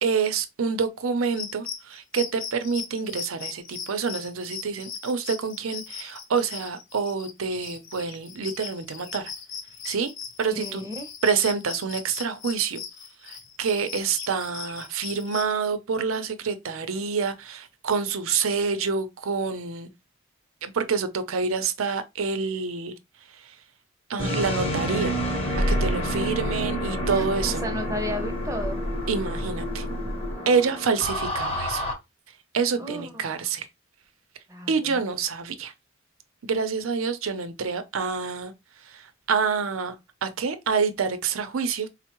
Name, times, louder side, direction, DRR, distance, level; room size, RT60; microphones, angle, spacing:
voice 1, 0.0-9.3 9.8-10.1 10.4-10.8 11.2-12.8 13.2-19.9 20.6-22.9 24.1-25.2 25.7-27.6 29.1-29.8 30.5-31.8 32.5-33.6 34.7-35.7 36.4-38.5 38.9-39.0 39.3-40.0 40.2-41.9, right 5 dB, 85° right, 0.5 m, -27 dB
sound 1, 1.2-15.5, left 7 dB, 65° left, 0.7 m, -39 dB
voice 2, 10.5-11.1 27.1-28.8 30.3-30.5 32.7-33.4 34.5-35.0, left 1 dB, 15° right, 0.6 m, -35 dB
sound 2, 24.2-31.9, equal, 30° left, 0.8 m, -28 dB
4.3 x 2.0 x 2.9 m
head